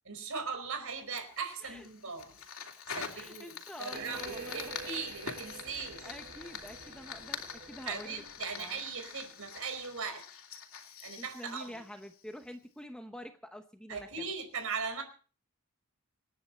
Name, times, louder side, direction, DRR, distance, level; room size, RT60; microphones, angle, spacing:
voice 1, 0.1-2.3 2.9-6.1 7.8-10.3 11.0-11.8 13.9-15.0, right 5 dB, 65° right, 7 dB, 4.9 m, -39 dB
Fire, 1.2-12.5, left 6 dB, 65° left, 2.9 m, -45 dB
voice 2, 3.1-4.8 5.7-8.8 11.2-14.2, equal, 5° left, 6 dB, 0.9 m, -47 dB
sound 1, 3.9-9.0, right 4 dB, 45° right, 1.8 m, -48 dB
26.5 x 9.9 x 4.3 m, 0.39 s
head